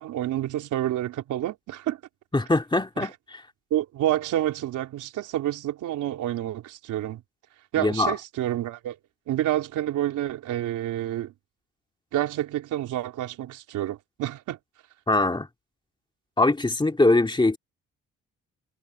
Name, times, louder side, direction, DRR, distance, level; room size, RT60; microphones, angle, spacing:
voice 1, 0.0-2.0 3.0-3.1 3.7-7.2 7.7-9.0 9.3-11.3 12.1-14.6, right 13 dB, 85° right, 3.6 m, -28 dB
voice 2, 2.3-3.4 7.8-8.1 15.1-15.5 16.4-17.6, left 2 dB, 15° left, 2.5 m, -22 dB
cardioid pair, 90°, 30 cm